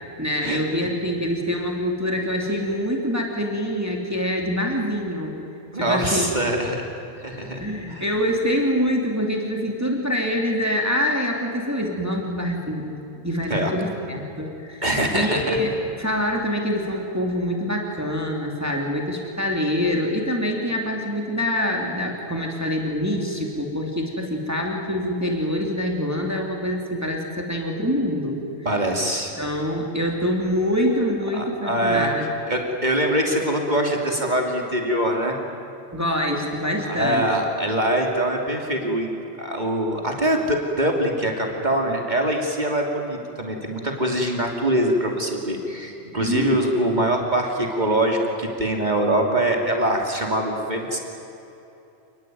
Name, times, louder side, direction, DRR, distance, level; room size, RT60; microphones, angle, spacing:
voice 1, 0.2-5.4 5.7-6.3 7.6-13.0 13.2-14.8 15.1-28.4 29.4-32.3 35.9-37.3 46.2-46.6, equal, 15° right, 0 dB, 2.9 m, -25 dB
voice 2, 5.7-6.8 7.2-7.6 7.9-8.1 13.5-13.7 14.8-15.6 28.6-29.3 31.3-32.1 32.5-35.4 36.8-39.1 39.4-51.0, right 1 dB, 40° right, 1 dB, 3.1 m, -23 dB
28.5 x 20.5 x 9.3 m, 2.9 s
omnidirectional pair, 1.1 m